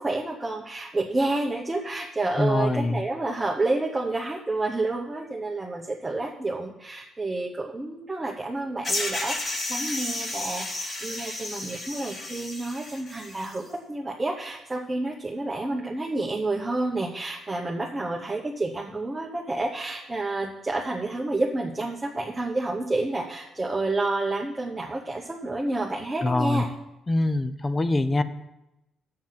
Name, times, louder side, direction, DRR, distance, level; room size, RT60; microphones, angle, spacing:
voice 1, 0.0-26.7, right 2 dB, 20° right, 0 dB, 1.0 m, -29 dB
voice 2, 2.4-3.0 26.2-26.6 27.1-28.2, left 2 dB, 25° left, 13 dB, 0.7 m, -24 dB
sound 1, 8.8-13.6, left 2 dB, 45° left, 2.2 m, -32 dB
8.7 x 7.6 x 5.8 m, 0.92 s
cardioid pair, 90°, 0 cm